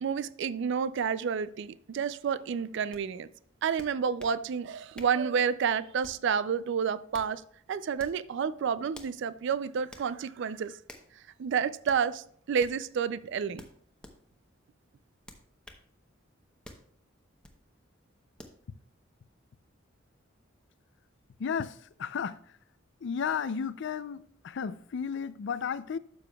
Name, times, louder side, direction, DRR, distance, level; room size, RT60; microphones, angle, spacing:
voice 1, 0.0-3.3 3.6-7.4 7.7-10.8 11.4-13.6, right 6 dB, 65° right, 0.4 m, -30 dB
sound 1, 2.9-3.0 3.8-4.4 4.9-5.2 6.0-6.3 6.9-7.3 7.9-8.2 8.9-9.2 9.9-10.1 10.9-11.1 11.8-12.0 12.6-12.8 13.6-14.2 15.2-15.8 16.6-16.9 17.4-17.6 18.4-18.6, left 1 dB, 5° left, 0.8 m, -49 dB
voice 2, 21.4-21.7 22.0-22.4 23.0-26.0, left 6 dB, 60° left, 0.4 m, -33 dB
12.0 x 7.0 x 2.3 m
head